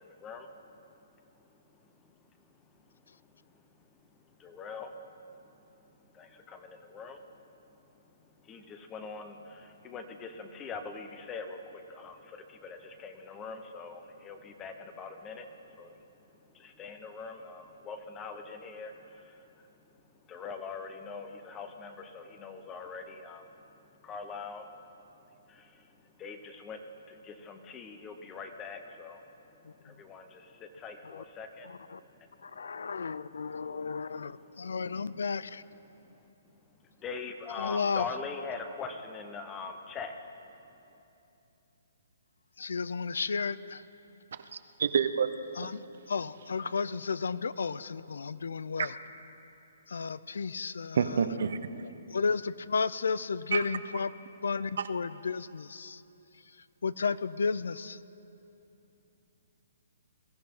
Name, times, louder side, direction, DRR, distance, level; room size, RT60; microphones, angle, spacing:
voice 1, 0.0-33.1 33.6-34.8 35.9-40.2, left 4 dB, 15° left, 0.9 m, -44 dB
voice 2, 31.6-32.0 32.4-35.6 37.6-38.1 42.6-43.8 45.6-49.0 49.9-51.3 52.1-54.1 54.4-56.0 56.5-58.0, left 5 dB, 85° left, 0.4 m, -33 dB
voice 3, 44.5-45.3 51.0-51.8 53.5-53.6, right 6 dB, 65° right, 0.7 m, -28 dB
22.0 x 14.5 x 3.8 m
hypercardioid pair, 160°, 0 cm